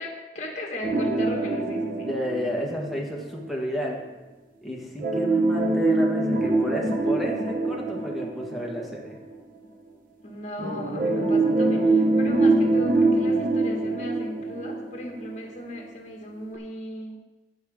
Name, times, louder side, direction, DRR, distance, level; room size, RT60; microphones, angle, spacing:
voice 1, 0.0-2.1 10.2-17.2, left 1 dB, 40° left, 0 dB, 1.9 m, -37 dB
sound 1, 0.8-3.5 5.0-9.3 10.6-15.5 15.8-15.9 16.5-16.6, right 2 dB, 50° right, 0.9 m, -24 dB
voice 2, 2.0-4.0 4.6-9.2, equal, ahead, -1 dB, 1.4 m, -32 dB
14.5 x 5.2 x 3.7 m, 1.1 s
head